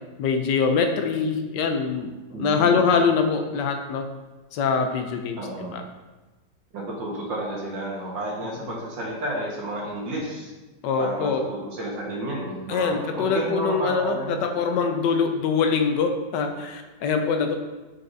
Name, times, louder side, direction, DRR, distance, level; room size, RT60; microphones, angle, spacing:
voice 1, 0.2-4.1 4.5-5.8 8.6-8.7 10.8-11.4 12.7-17.5, left 5 dB, 80° left, 6 dB, 1.3 m, -24 dB
voice 2, 2.3-2.8 5.4-5.7 6.7-10.5 11.0-14.4, right 1 dB, 90° right, -3 dB, 2.1 m, -31 dB
6.4 x 5.8 x 2.7 m, 1.2 s
omnidirectional pair, 1.9 m